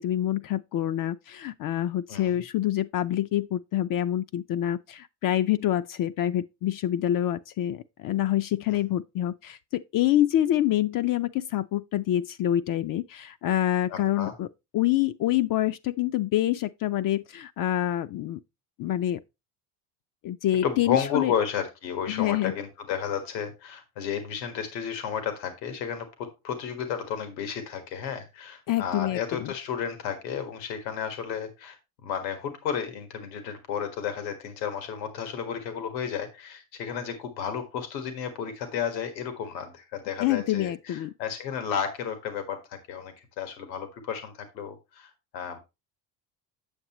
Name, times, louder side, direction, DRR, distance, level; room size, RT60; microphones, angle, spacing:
voice 1, 0.0-14.5 14.7-18.4 18.8-19.2 20.2-21.3 22.1-22.5 28.7-29.5 40.2-41.1, left 13 dB, 45° left, 0.5 m, -26 dB
voice 2, 13.9-14.3 20.6-31.8 32.0-45.6, left 7 dB, 85° left, 1.7 m, -32 dB
8.1 x 7.0 x 3.0 m
hypercardioid pair, 75°, 50 cm